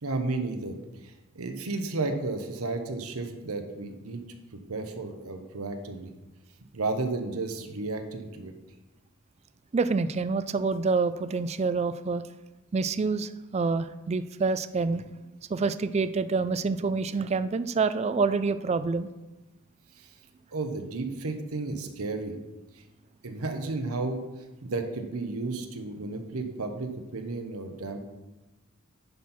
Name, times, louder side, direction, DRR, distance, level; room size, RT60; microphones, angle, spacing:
voice 1, 0.0-4.4 4.7-6.1 6.7-8.5 20.0-20.1 20.5-22.3 22.8-22.9 23.2-24.2 24.6-28.0, right 3 dB, 85° right, 6 dB, 1.0 m, -33 dB
voice 2, 9.7-12.2 12.7-15.0 15.5-19.1, right 4 dB, 30° right, 13 dB, 0.3 m, -27 dB
10.5 x 4.4 x 5.6 m, 1.1 s
head